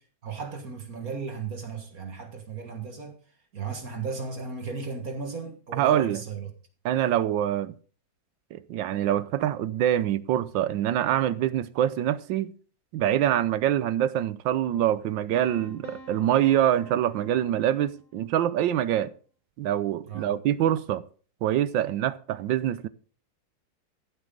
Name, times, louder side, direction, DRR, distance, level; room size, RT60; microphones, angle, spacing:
voice 1, 0.2-3.2 3.5-6.5 20.1-20.3, right 5 dB, 45° right, 1.9 m, -35 dB
voice 2, 5.8-6.2 6.8-7.7 8.5-12.5 12.9-19.1 19.6-21.0 21.4-22.9, right 11 dB, 75° right, 1.3 m, -25 dB
Piano, 15.3-18.2, equal, 50° left, 3.5 m, -48 dB
14.5 x 8.2 x 3.8 m
omnidirectional pair, 2.2 m